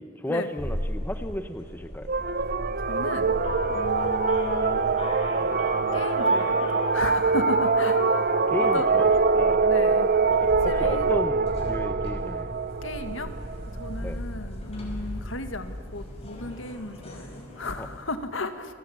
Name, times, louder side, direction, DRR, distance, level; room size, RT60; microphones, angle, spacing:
voice 1, 0.0-2.1 7.6-7.7 8.5-9.6 10.3-12.5 14.0-14.2 17.8-17.9, equal, 10° left, 9 dB, 1.0 m, -33 dB
sound 1, 0.6-18.0, equal, 30° left, 5.3 m, -38 dB
sound 2, 2.1-13.9, right 4 dB, 50° right, 0.8 m, -24 dB
voice 2, 2.9-3.4 3.7-4.8 5.9-6.7 6.9-8.3 8.6-9.2 9.6-10.1 10.6-11.1 12.8-13.3 13.7-18.7, left 2 dB, 70° left, 9 dB, 1.8 m, -35 dB
sound 3, 3.3-10.1, left 5 dB, 55° left, 1.4 m, -35 dB
29.5 x 20.0 x 8.6 m, 2.5 s
head